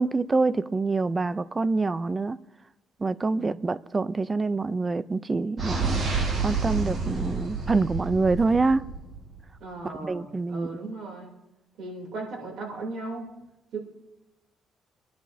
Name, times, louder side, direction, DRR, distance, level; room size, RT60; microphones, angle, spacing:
voice 1, 0.0-2.4 3.0-8.8 10.0-10.8, right 3 dB, 25° right, 0.4 m, -26 dB
voice 2, 3.3-3.6 9.6-11.3 11.8-13.3 13.7-13.8, right 3 dB, 75° right, 3.1 m, -37 dB
sound 1, 5.6-9.4, right 4 dB, 55° right, 4.6 m, -29 dB
23.0 x 10.5 x 2.7 m
cardioid pair, 90°, 0 cm